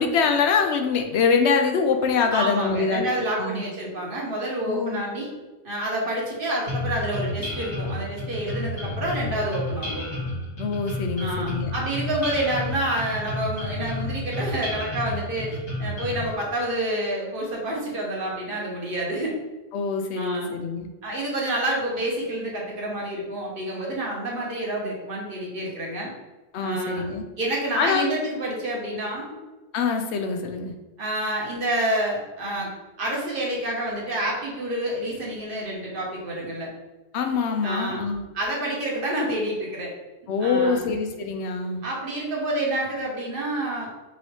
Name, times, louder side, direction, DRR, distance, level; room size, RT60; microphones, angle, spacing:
voice 1, 0.0-3.1 3.4-3.6 4.7-5.0 10.6-11.7 19.7-20.9 26.5-27.2 27.7-28.1 29.7-30.7 37.1-38.2 40.3-41.8, left 5 dB, 85° left, 5 dB, 0.8 m, -24 dB
voice 2, 2.3-5.3 5.6-10.0 11.2-19.3 20.2-20.5 21.0-26.1 26.6-27.0 27.4-29.3 31.0-32.7 33.0-36.7 37.6-38.0 38.3-39.9 40.4-40.9 41.8-43.9, right 1 dB, 55° right, -3 dB, 1.3 m, -28 dB
sound 1, 6.7-16.3, left 1 dB, 65° left, 1.8 m, -31 dB
5.3 x 2.7 x 3.3 m, 1.2 s
omnidirectional pair, 1.1 m